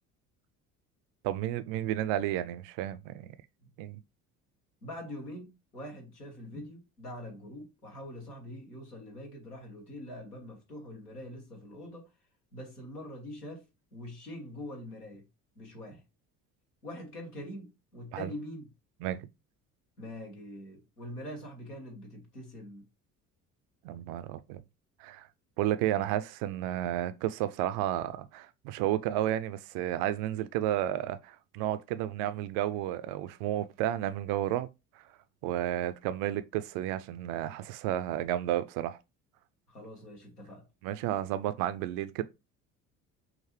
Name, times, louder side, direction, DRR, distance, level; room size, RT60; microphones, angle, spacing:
voice 1, 1.2-3.3 3.8-4.0 18.1-18.3 19.0-19.2 23.8-24.6 25.0-25.3 25.6-34.7 35.4-39.0 40.8-42.2, right 12 dB, 50° right, 0.5 m, -32 dB
voice 2, 4.8-12.1 12.5-15.3 15.5-16.0 16.8-18.7 20.0-22.8 39.7-40.6, left 1 dB, 85° left, 1.4 m, -44 dB
5.8 x 2.6 x 3.1 m
figure-of-eight pair, 55°, 46 cm